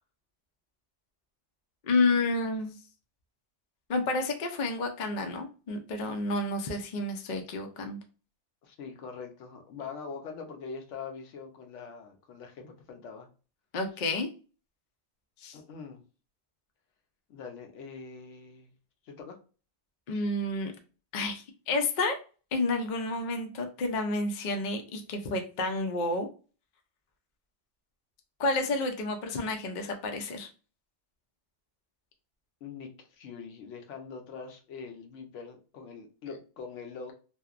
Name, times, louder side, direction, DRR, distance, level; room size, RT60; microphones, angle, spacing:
voice 1, 1.8-2.8 3.9-8.0 13.7-14.3 15.4-15.6 20.1-20.7 21.1-22.1 22.5-26.3 28.4-30.5, left 2 dB, 55° left, 5 dB, 0.5 m, -30 dB
voice 2, 8.6-13.3 15.5-16.0 17.3-18.7 19.0-19.4 32.6-37.1, left 5 dB, 75° left, 4 dB, 0.9 m, -43 dB
2.9 x 2.0 x 2.4 m, 0.35 s
omnidirectional pair, 1.3 m